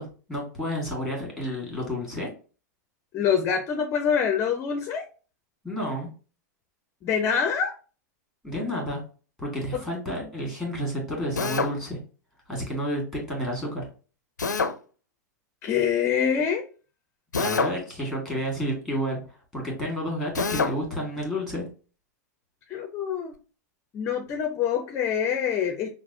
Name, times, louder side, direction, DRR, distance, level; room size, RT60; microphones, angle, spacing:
voice 1, 0.0-2.3 5.6-6.1 8.4-9.0 9.4-12.0 12.5-13.0 13.3-13.9 17.3-21.7, equal, ahead, -1 dB, 1.7 m, -30 dB
voice 2, 3.1-5.1 7.0-7.7 9.7-9.8 15.6-16.7 22.7-23.3 23.9-25.9, left 7 dB, 30° left, 6 dB, 0.5 m, -25 dB
Drill, 11.4-11.8 14.4-14.8 17.3-17.8 20.3-20.8, left 4 dB, 80° left, 0.4 m, -25 dB
5.8 x 2.0 x 2.7 m, 0.36 s
figure-of-eight pair, 95°, 10 cm